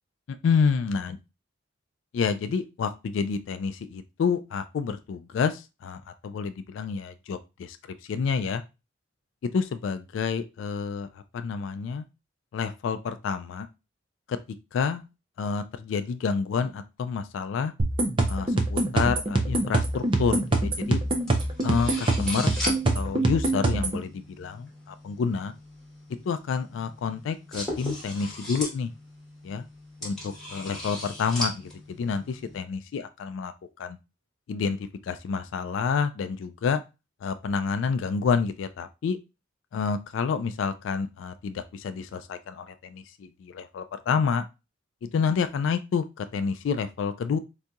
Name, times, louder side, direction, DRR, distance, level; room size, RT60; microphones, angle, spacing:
voice 1, 0.4-1.1 2.1-7.8 8.1-8.6 9.4-11.1 11.3-12.0 12.5-13.7 14.3-14.4 14.7-15.0 15.4-17.7 18.3-21.0 21.6-25.5 26.3-28.9 29.4-29.6 30.0-33.5 33.8-34.0 34.5-34.8 35.1-36.8 37.2-39.2 39.7-44.4 45.0-47.4, left 5 dB, 75° left, 11 dB, 0.3 m, -29 dB
sound 1, 17.8-24.0, right 2 dB, 25° right, 0.5 m, -24 dB
sound 2, 19.8-32.6, left 1 dB, 5° left, 1.1 m, -39 dB
3.9 x 2.7 x 2.3 m, 0.27 s
head